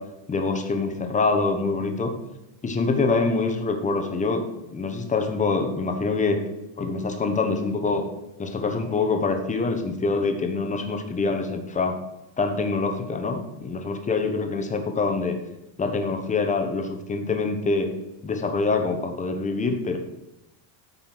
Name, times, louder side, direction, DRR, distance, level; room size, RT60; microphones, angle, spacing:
voice 1, 0.3-2.1 2.6-6.4 6.8-8.0 8.4-12.0 12.4-15.4 15.8-17.9 18.2-20.0, left 3 dB, 15° left, 5 dB, 1.1 m, -25 dB
13.0 x 5.5 x 6.0 m, 0.94 s
cardioid pair, 165°, 50 cm